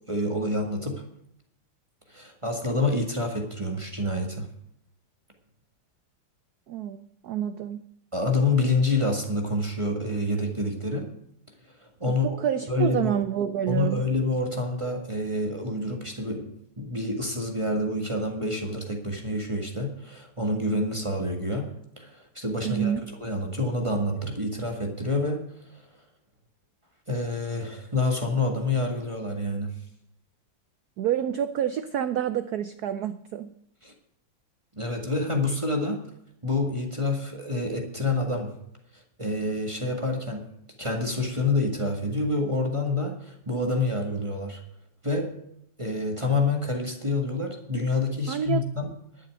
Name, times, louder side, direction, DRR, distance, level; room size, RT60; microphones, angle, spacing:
voice 1, 0.1-1.0 2.1-4.5 8.1-11.2 11.6-12.4 12.7-13.1 13.7-22.9 23.2-25.8 27.1-29.8 33.8-33.9 34.7-36.0 36.4-38.6 38.9-40.5 40.8-44.6 45.0-45.4 45.8-48.9, left 2 dB, 15° right, 1 dB, 1.6 m, -28 dB
voice 2, 6.7-7.9 12.1-14.0 22.6-23.1 31.0-33.5 48.3-48.7, right 9 dB, 80° right, 11 dB, 0.8 m, -28 dB
11.5 x 6.9 x 8.9 m, 0.74 s
omnidirectional pair, 2.3 m